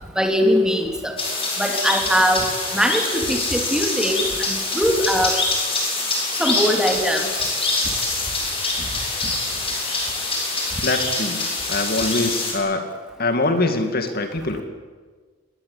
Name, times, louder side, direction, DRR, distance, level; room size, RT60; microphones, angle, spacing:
voice 1, 0.2-1.1 1.6-2.5 2.7-5.4 6.4-7.5, equal, 5° right, 3 dB, 3.2 m, -21 dB
sound 1, 1.2-12.5, left 3 dB, 30° left, 7.4 m, -25 dB
voice 2, 10.8-11.4 11.7-12.8 13.2-14.6, left 2 dB, 50° left, 6 dB, 2.3 m, -23 dB
28.0 x 21.5 x 8.5 m, 1.4 s
head